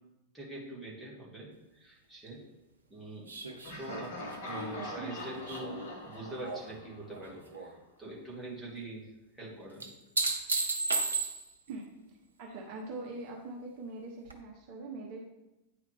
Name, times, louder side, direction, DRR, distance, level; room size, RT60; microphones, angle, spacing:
voice 1, 0.3-2.4 2.9-3.4 3.8-9.1 9.3-9.9, right 1 dB, ahead, -7 dB, 2.3 m, -44 dB
sound 1, 3.3-6.7 7.1-7.7 9.8-11.7 14.3-14.4, right 3 dB, 75° right, 0.8 m, -35 dB
Laughter, 3.6-7.5, left 1 dB, 50° left, 1.7 m, -44 dB
voice 2, 4.6-5.1 11.7-11.9 12.4-15.2, right 3 dB, 45° right, -2 dB, 1.2 m, -42 dB
9.4 x 4.7 x 3.5 m, 0.96 s
figure-of-eight pair, 90°, 0 cm